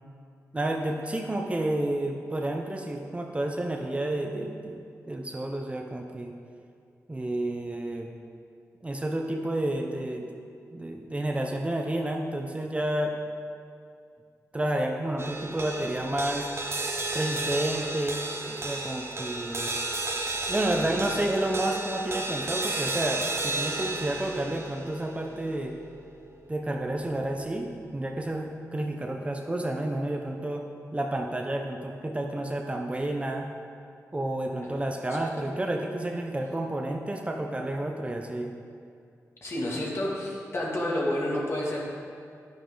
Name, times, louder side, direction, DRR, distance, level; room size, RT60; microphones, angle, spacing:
voice 1, 0.5-6.3 7.1-8.1 8.8-10.3 10.7-13.2 14.5-16.5 17.1-19.8 20.5-25.7 26.5-30.7 30.9-33.5 34.1-38.5, right 1 dB, 20° right, 3 dB, 0.7 m, -30 dB
sound 1, 15.2-27.7, right 2 dB, 45° right, 1.0 m, -33 dB
voice 2, 39.4-41.8, left 1 dB, 50° left, -4 dB, 2.5 m, -30 dB
10.5 x 10.0 x 3.9 m, 2.4 s
wide cardioid pair, 95°, 6 cm